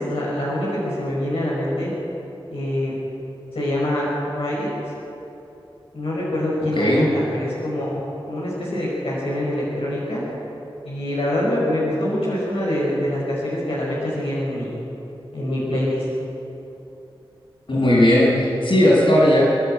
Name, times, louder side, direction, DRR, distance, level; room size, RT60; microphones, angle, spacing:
voice 1, 0.0-1.9 2.5-2.9 3.5-4.1 4.3-4.7 5.9-10.2 10.8-14.7 15.3-16.0, left 1 dB, 90° left, -6 dB, 5.3 m, -25 dB
voice 2, 6.7-7.1 17.7-19.5, left 1 dB, 65° left, -4 dB, 6.8 m, -16 dB
27.0 x 11.0 x 9.1 m, 2.9 s
wide cardioid pair, 60°, 9 cm